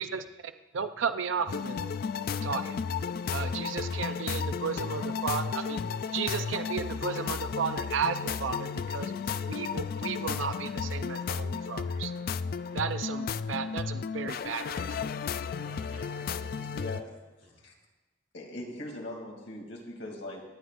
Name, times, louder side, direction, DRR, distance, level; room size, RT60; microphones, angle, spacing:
voice 1, 0.0-1.9 2.4-2.8 3.3-12.1 12.7-15.0, right 6 dB, 90° right, 10 dB, 0.5 m, -34 dB
sound 1, 1.5-17.0, left 6 dB, 50° left, 0.3 m, -33 dB
voice 2, 15.6-17.0 17.4-17.7, right 1 dB, 35° right, 2 dB, 1.6 m, -53 dB
voice 3, 16.7-17.1 17.4-17.7 18.3-20.4, left 1 dB, 75° left, 0 dB, 2.9 m, -40 dB
25.0 x 9.6 x 2.6 m, 1.2 s
head